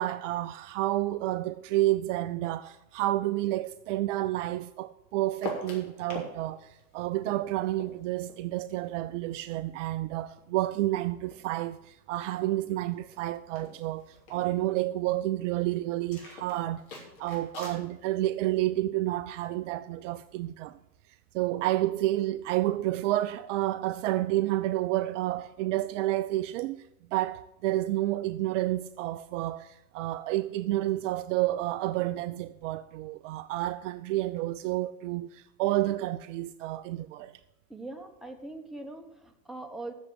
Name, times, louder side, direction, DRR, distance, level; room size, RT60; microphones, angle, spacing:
voice 1, 0.0-20.8 21.3-37.3, right 16 dB, 55° right, 0.5 m, -30 dB
sound 1, 5.4-6.3 6.6-9.4 9.8-11.5 11.8-12.3 12.6-12.7 12.9-13.2 13.5-14.5 16.0-17.8, left 4 dB, 60° left, 3.5 m, -43 dB
voice 2, 37.7-39.9, right 2 dB, ahead, 1.3 m, -41 dB
8.1 x 7.1 x 8.1 m
hypercardioid pair, 100°, 46 cm